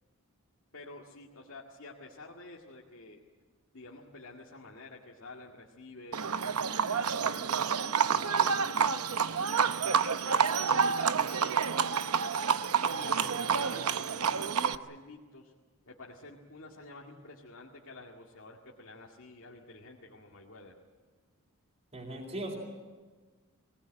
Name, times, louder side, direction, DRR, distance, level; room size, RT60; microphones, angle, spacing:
voice 1, 0.7-3.2 3.7-6.5 6.9-9.9 10.2-12.1 12.9-15.5 15.9-20.7, left 2 dB, 70° left, -2 dB, 2.1 m, -49 dB
Livestock farm animals working animals, 6.1-14.8, right 6 dB, 85° right, 0.8 m, -28 dB
voice 2, 21.9-22.5, right 1 dB, 30° right, -4 dB, 4.0 m, -38 dB
23.5 x 19.0 x 9.0 m, 1.4 s
head